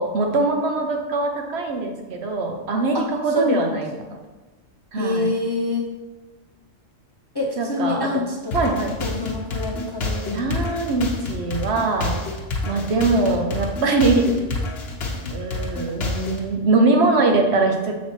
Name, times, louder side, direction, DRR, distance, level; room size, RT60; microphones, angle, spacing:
voice 1, 0.0-3.9 4.9-5.3 7.6-8.1 8.5-9.0 10.3-12.2 12.7-14.3 15.3-17.9, right 3 dB, 65° right, 3 dB, 1.0 m, -22 dB
voice 2, 3.3-3.8 4.9-5.9 7.3-8.7 9.0-10.6, left 3 dB, 30° left, -1 dB, 0.4 m, -26 dB
sound 1, 8.5-16.5, left 2 dB, 60° left, 1.2 m, -28 dB
6.3 x 4.2 x 4.4 m, 1.2 s
omnidirectional pair, 1.3 m